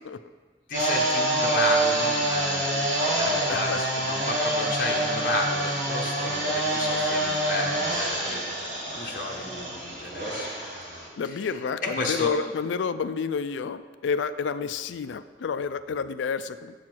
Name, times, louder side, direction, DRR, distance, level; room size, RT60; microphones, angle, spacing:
voice 1, 0.7-8.5 8.8-10.6 11.2-12.3, left 2 dB, 45° left, 0 dB, 1.0 m, -32 dB
sound 1, 0.7-11.1, right 1 dB, 45° right, 2.5 m, -26 dB
voice 2, 3.2-3.8 6.2-6.3 6.7-6.8 11.2-16.8, left 5 dB, 90° left, 12 dB, 0.4 m, -30 dB
7.5 x 6.9 x 4.5 m, 1.5 s
head